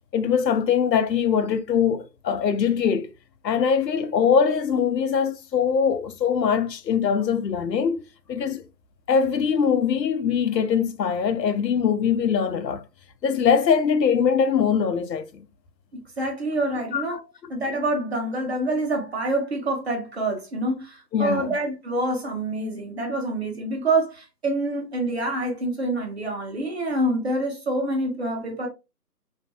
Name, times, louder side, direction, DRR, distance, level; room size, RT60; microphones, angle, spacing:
voice 1, 0.1-3.1 3.4-8.0 8.3-8.6 9.1-12.8 13.2-15.5 16.9-17.0 21.1-21.6, left 7 dB, 85° left, 0.6 m, -22 dB
voice 2, 15.9-17.2 17.5-28.7, right 2 dB, 40° right, 0.8 m, -26 dB
2.5 x 2.1 x 2.6 m
figure-of-eight pair, 155°, 50 cm